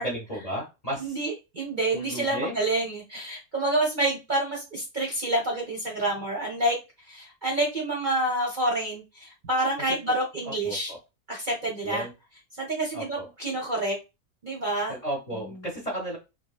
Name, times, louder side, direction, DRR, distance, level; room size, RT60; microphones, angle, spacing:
voice 1, 0.0-1.2 1.9-2.5 9.9-10.1 10.4-11.0 11.8-12.1 12.9-13.3 14.9-16.2, right 1 dB, 30° left, -1 dB, 0.9 m, -34 dB
voice 2, 1.0-6.8 7.1-10.9 11.3-12.1 12.6-13.9 14.4-15.0, right 1 dB, 45° right, -1 dB, 0.8 m, -28 dB
3.1 x 2.3 x 2.4 m, 0.25 s
omnidirectional pair, 1.4 m